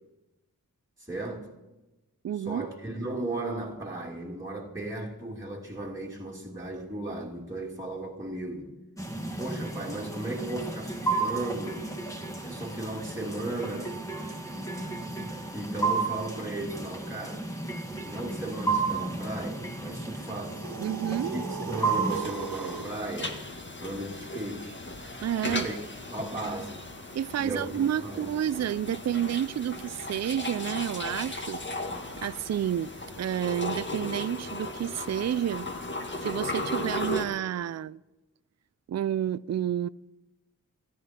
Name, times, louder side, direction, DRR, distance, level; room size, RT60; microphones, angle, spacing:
voice 1, 1.0-1.5 2.5-8.7 9.4-11.9 12.4-14.0 15.5-17.5 18.1-20.6 21.2-23.4 23.8-24.8 25.5-25.8 26.1-26.9 27.4-28.3, right 2 dB, 10° right, 2.6 m, -36 dB
voice 2, 2.2-2.7 20.8-21.4 25.2-25.7 27.1-31.8 32.2-32.9 33.2-35.7 36.2-38.0 38.9-39.9, right 10 dB, 50° right, 0.4 m, -30 dB
sound 1, 9.0-22.2, right 3 dB, 10° left, 2.1 m, -33 dB
sound 2, 20.4-23.0, right 6 dB, 85° right, 1.1 m, -37 dB
sound 3, 22.1-37.3, left 1 dB, 35° left, 1.8 m, -36 dB
26.5 x 10.0 x 4.4 m
cardioid pair, 40°, 34 cm